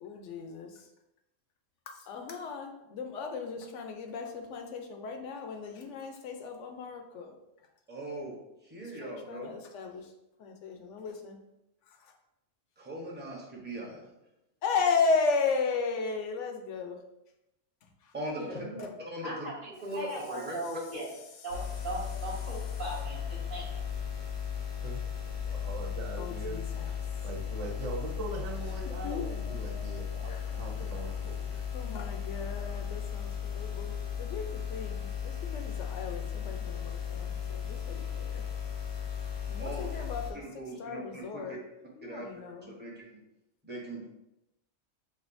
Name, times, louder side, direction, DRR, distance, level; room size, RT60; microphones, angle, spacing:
voice 1, 0.0-0.7 1.9-7.4 8.8-10.1 10.4-11.4 11.9-12.1 14.6-17.0 18.0-18.1 18.8-18.9 21.4-21.5 26.2-27.0 29.0-31.0 31.7-38.4 39.5-41.6 41.9-42.7, left 4 dB, 75° left, 4 dB, 0.9 m, -35 dB
voice 2, 7.9-8.3 8.6-9.6 12.8-14.0 18.1-18.6 19.0-19.3 19.8-20.5 39.6-39.9 40.6-41.4 42.0-42.3 42.7-43.2 43.6-44.1, right 1 dB, 10° right, -3 dB, 0.7 m, -39 dB
voice 3, 18.3-18.9 19.2-21.1 21.4-23.8, right 1 dB, 45° right, -8 dB, 0.9 m, -39 dB
sound 1, 21.5-40.3, left 8 dB, 45° left, 0.4 m, -36 dB
voice 4, 25.5-26.6 26.9-32.0, right 3 dB, 80° right, -1 dB, 1.2 m, -41 dB
5.4 x 2.5 x 2.6 m, 0.88 s
omnidirectional pair, 1.3 m